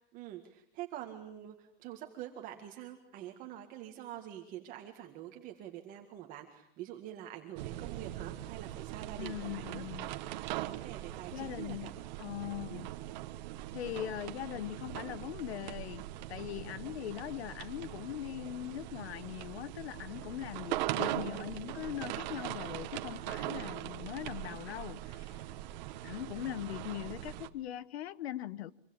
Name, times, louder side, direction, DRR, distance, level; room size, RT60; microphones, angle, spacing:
voice 1, 0.0-9.9 10.3-10.5 10.8-11.9 12.7-12.9, right 12 dB, 25° right, 2.0 m, -46 dB
sound 1, 7.6-27.5, right 14 dB, 45° right, 1.4 m, -41 dB
voice 2, 9.2-10.1 11.3-13.0 13.7-16.0 16.3-25.4 26.0-28.7, left 12 dB, 85° left, 1.2 m, -41 dB
26.0 x 25.0 x 8.7 m
supercardioid pair, 180°, 31 cm